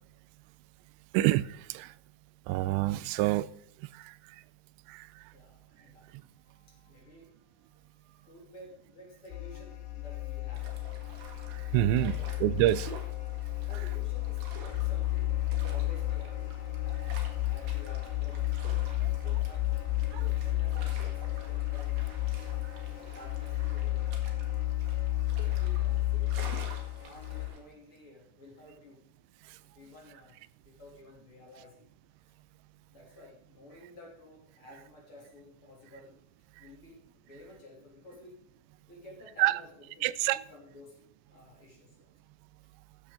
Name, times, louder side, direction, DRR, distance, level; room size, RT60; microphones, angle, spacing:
voice 1, 1.1-1.9 2.5-3.5 3.9-4.1 4.9-5.1 11.5-12.2 12.4-12.9 19.0-19.1 20.1-20.3 39.4-39.6 40.0-40.4, right 16 dB, 90° right, 18 dB, 2.8 m, -27 dB
voice 2, 5.3-10.9 11.9-12.4 12.8-17.2 17.5-18.7 19.2-19.8 20.2-22.2 23.1-24.2 25.4-29.0 29.6-30.4 30.6-31.8 32.9-36.1 36.6-38.4 38.9-41.0 41.3-42.1, left 1 dB, 35° left, -2 dB, 3.1 m, -53 dB
sound 1, 9.3-27.5, left 16 dB, 75° left, 3.2 m, -32 dB
sound 2, 10.5-27.6, right 4 dB, 70° right, 3.9 m, -49 dB
14.0 x 8.6 x 3.8 m, 0.71 s
omnidirectional pair, 5.0 m